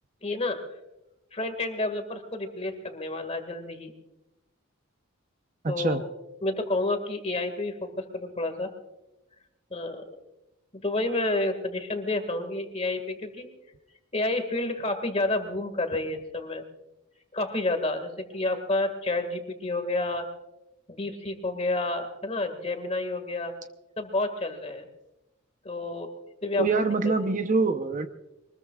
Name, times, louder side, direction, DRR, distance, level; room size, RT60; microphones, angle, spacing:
voice 1, 0.2-0.6 1.3-3.9 5.7-6.1 6.4-8.7 9.7-10.0 10.8-13.4 14.1-16.6 17.3-20.3 20.9-23.5 24.0-24.9 25.7-26.1 26.4-26.8, left 2 dB, 30° left, 7 dB, 1.9 m, -29 dB
voice 2, 5.6-6.0 26.6-28.1, right 3 dB, 40° right, 7 dB, 0.8 m, -25 dB
23.5 x 20.5 x 2.4 m, 0.93 s
head